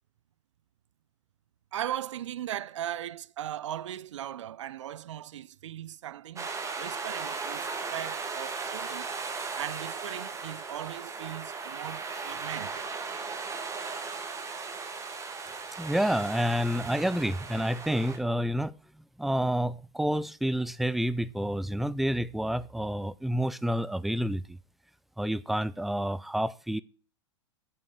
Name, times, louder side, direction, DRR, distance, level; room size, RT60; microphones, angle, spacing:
voice 1, 1.7-9.1 9.6-12.9, right 11 dB, 75° right, 0.5 m, -38 dB
sound 1, 6.4-18.2, right 4 dB, 20° right, 1.4 m, -37 dB
voice 2, 15.8-18.7 19.2-24.6 25.2-26.8, equal, ahead, 0.3 m, -29 dB
7.7 x 5.6 x 6.5 m
hypercardioid pair, 100°, 16 cm